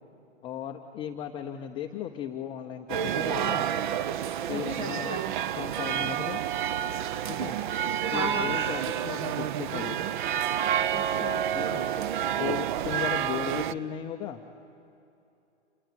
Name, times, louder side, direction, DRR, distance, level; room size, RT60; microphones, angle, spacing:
voice 1, 0.4-3.7 4.5-5.2 5.6-6.4 7.3-7.6 8.1-10.0 11.5-11.9 12.4-14.4, left 9 dB, 15° left, 3 dB, 0.5 m, -36 dB
sound 1, 2.9-13.7, right 10 dB, 45° right, 0.6 m, -29 dB
voice 2, 4.5-5.3 8.1-8.5 10.9-11.5, right 1 dB, 20° right, 10 dB, 1.0 m, -35 dB
27.0 x 18.0 x 9.0 m, 2.7 s
hypercardioid pair, 135°, 35 cm